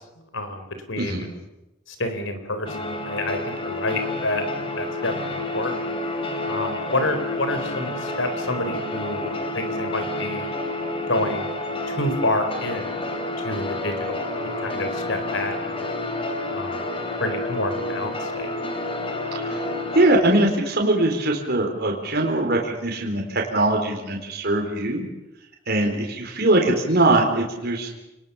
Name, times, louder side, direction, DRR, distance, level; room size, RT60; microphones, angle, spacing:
voice 1, 0.2-1.3 1.9-5.9 6.5-10.5 11.0-11.5 11.9-12.9 13.4-15.9 16.5-16.9 17.2-18.5, left 2 dB, 75° left, 8 dB, 4.2 m, -29 dB
voice 2, 1.0-1.3 19.3-19.7 19.9-25.1 25.7-27.9, right 2 dB, 55° right, 1 dB, 4.0 m, -21 dB
sound 1, 2.7-20.2, left 2 dB, 25° left, 3.3 m, -29 dB
29.0 x 20.0 x 7.0 m, 0.94 s
head